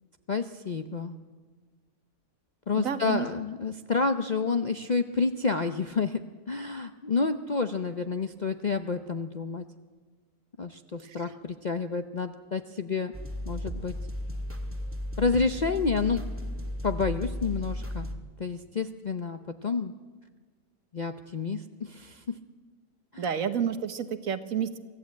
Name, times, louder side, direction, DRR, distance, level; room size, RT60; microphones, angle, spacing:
voice 1, 0.3-1.1 2.7-9.6 10.6-13.1 13.5-13.9 15.2-16.2 16.8-18.1 18.4-19.9 20.9-22.4 23.1-23.2, left 4 dB, 45° left, 8 dB, 0.6 m, -29 dB
voice 2, 2.7-3.3 11.0-11.2 23.2-24.8, right 7 dB, 60° right, 11 dB, 1.4 m, -30 dB
sound 1, 13.1-18.1, left 1 dB, 10° right, 1.6 m, -35 dB
24.0 x 15.0 x 8.5 m, 1.4 s
omnidirectional pair, 1.6 m